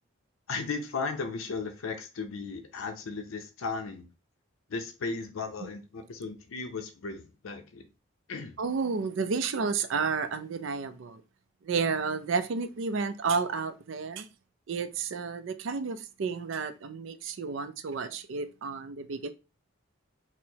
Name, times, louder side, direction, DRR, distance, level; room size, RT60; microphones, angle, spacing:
voice 1, 0.5-4.1 4.7-7.9 8.3-8.6, left 4 dB, 80° left, 0.5 m, -36 dB
voice 2, 8.6-11.2 11.6-14.3 14.7-19.3, right 5 dB, 65° right, 0.4 m, -31 dB
4.4 x 2.0 x 2.7 m
head